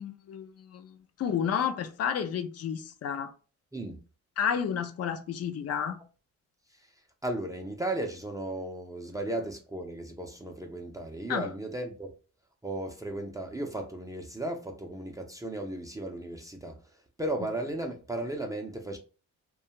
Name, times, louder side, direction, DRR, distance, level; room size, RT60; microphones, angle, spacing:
voice 1, 0.0-3.3 4.4-6.0 11.3-11.5, left 8 dB, 55° left, 0.5 m, -31 dB
voice 2, 7.2-12.1 12.6-16.8 17.2-19.0, right 1 dB, 10° right, 0.5 m, -35 dB
2.3 x 2.3 x 2.8 m
cardioid pair, 90°, 30 cm